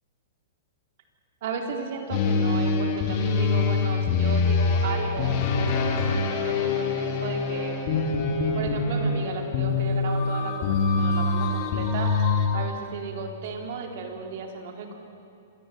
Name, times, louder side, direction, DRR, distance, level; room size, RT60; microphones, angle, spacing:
voice 1, 1.4-7.7 8.5-12.1 12.5-14.9, right 5 dB, 50° right, 3 dB, 3.9 m, -35 dB
sound 1, 2.1-12.5, left 4 dB, 35° left, 3.3 m, -24 dB
25.5 x 19.5 x 9.3 m, 2.8 s
hypercardioid pair, 160°, 0 cm